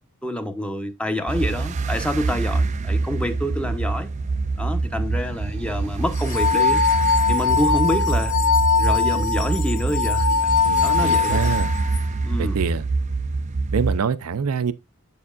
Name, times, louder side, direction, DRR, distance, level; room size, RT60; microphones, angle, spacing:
voice 1, 0.2-4.1 4.6-6.8 7.3-8.3 8.8-10.5 10.8-11.6 12.2-12.6, equal, 5° left, 0.9 m, -27 dB
sound 1, 1.3-14.0, right 3 dB, 35° right, 0.4 m, -25 dB
sound 2, 6.2-12.0, left 5 dB, 35° left, 0.8 m, -21 dB
voice 2, 10.6-11.7 12.4-12.9 13.7-14.7, right 6 dB, 80° right, 0.6 m, -25 dB
8.3 x 6.9 x 2.4 m
head